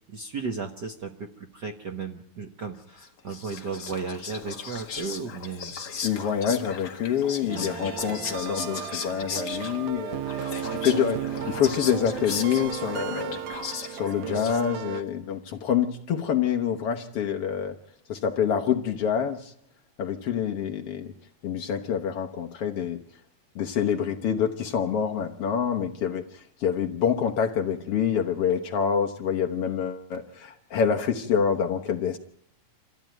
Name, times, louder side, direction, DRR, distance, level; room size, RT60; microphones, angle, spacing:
voice 1, 0.1-5.8, right 4 dB, 50° right, 4 dB, 1.4 m, -35 dB
Whispering, 3.0-14.9, left 6 dB, 45° left, 1.6 m, -37 dB
voice 2, 6.0-10.2 10.6-13.4 13.9-17.8 18.1-19.5 20.0-21.1 21.4-23.0 23.6-32.2, left 8 dB, 60° left, 4 dB, 1.9 m, -26 dB
sound 1, 7.5-15.0, right 9 dB, 85° right, 2.5 m, -34 dB
26.5 x 14.5 x 9.2 m, 0.74 s
omnidirectional pair, 3.4 m